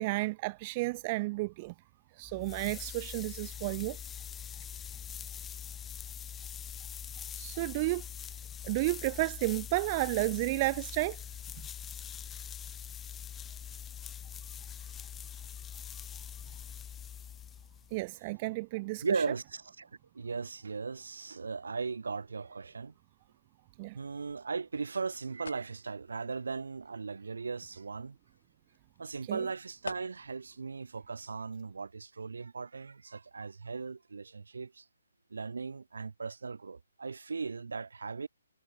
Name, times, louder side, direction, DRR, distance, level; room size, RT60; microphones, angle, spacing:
voice 1, 0.0-1.7 2.2-4.0 7.3-8.0 8.6-11.2 17.9-19.0 23.8-24.0 29.3-29.5, right 23 dB, 30° right, 0.5 m, -32 dB
sound 1, 2.2-18.0, left 9 dB, 15° left, 1.1 m, -43 dB
voice 2, 19.0-19.9 20.1-22.9 23.9-28.2 29.0-34.8 35.3-38.3, right 4 dB, 75° right, 5.8 m, -37 dB
sound 2, 24.1-30.5, left 4 dB, 80° left, 4.9 m, -51 dB
hypercardioid pair, 145°, 0 cm